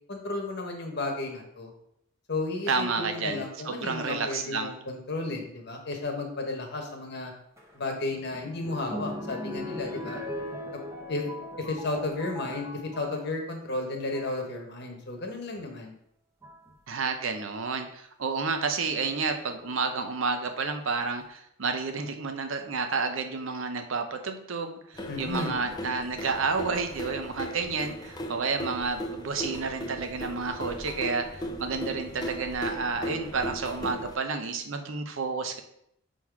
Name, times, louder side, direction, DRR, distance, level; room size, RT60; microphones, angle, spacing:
voice 1, 0.1-1.7 2.3-7.3 7.7-10.2 10.7-10.8 11.1-11.2 11.7-16.0 25.1-25.6, left 2 dB, 50° left, 2 dB, 1.1 m, -33 dB
voice 2, 2.7-4.7 16.9-35.6, right 4 dB, 70° right, 6 dB, 0.7 m, -30 dB
sound 1, 7.6-13.2 13.9-14.4 15.6-15.7 16.4-16.7 18.9-19.5 20.2-20.3 20.5-20.6, left 1 dB, 15° right, 0.8 m, -39 dB
sound 2, 25.0-34.1, equal, 20° left, 0.5 m, -37 dB
6.1 x 3.8 x 4.7 m, 0.75 s
head